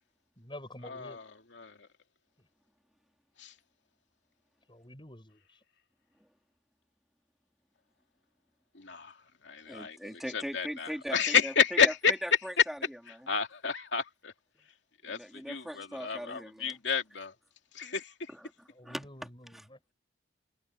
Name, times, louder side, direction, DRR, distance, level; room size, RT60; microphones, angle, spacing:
voice 1, 0.4-1.2 2.4-2.5 4.7-5.6 18.7-19.9, left 1 dB, 25° left, 7.2 m, -49 dB
voice 2, 0.9-1.2 1.5-1.9 3.4-3.5 8.7-9.1 9.4-10.0 10.3-12.1 13.3-14.3 15.0-17.3 17.7-18.3, left 6 dB, 80° left, 2.6 m, -30 dB
voice 3, 9.7-11.9 12.2-13.3 14.6-14.7 15.0-16.8 18.3-19.0, equal, ahead, 3.8 m, -40 dB
head